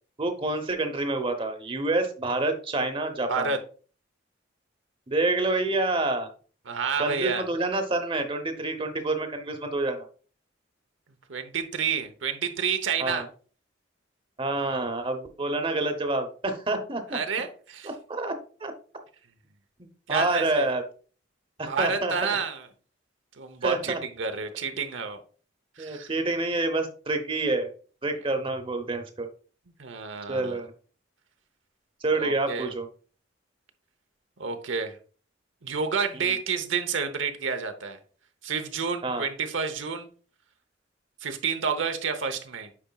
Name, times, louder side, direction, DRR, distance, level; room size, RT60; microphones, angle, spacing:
voice 1, 0.2-3.5 5.1-6.3 7.0-10.1 13.0-13.3 14.4-17.2 17.8-18.7 19.8-20.8 21.6-22.1 23.6-24.0 25.8-27.7 28.0-29.3 30.3-30.7 32.0-32.9 36.1-36.3 39.0-39.3, right 2 dB, 25° right, 7 dB, 0.9 m, -28 dB
voice 2, 6.7-7.4 11.3-13.3 17.1-17.9 20.1-20.7 21.7-22.7 23.4-25.2 25.8-26.1 29.8-30.6 32.1-32.7 34.4-35.0 35.6-38.0 38.4-40.1 41.2-42.7, right 5 dB, 80° right, 7 dB, 0.9 m, -29 dB
8.5 x 5.0 x 2.3 m, 0.40 s
head